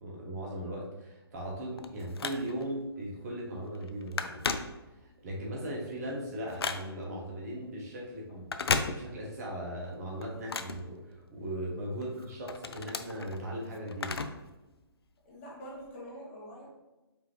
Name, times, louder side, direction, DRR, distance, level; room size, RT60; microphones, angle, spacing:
voice 1, 0.0-4.4 5.0-14.1, right 1 dB, 40° right, -2 dB, 1.1 m, -38 dB
Telephone, 1.4-2.8 3.3-3.5 3.7-5.2 5.7-7.2 8.4-9.5 9.8-11.6 12.0-14.5 14.8-14.9 15.8-15.9, left 4 dB, 70° left, 0.4 m, -35 dB
voice 2, 15.2-16.7, equal, 30° left, -3 dB, 1.1 m, -46 dB
4.9 x 2.8 x 3.2 m, 1.1 s
figure-of-eight pair, 140°, 13 cm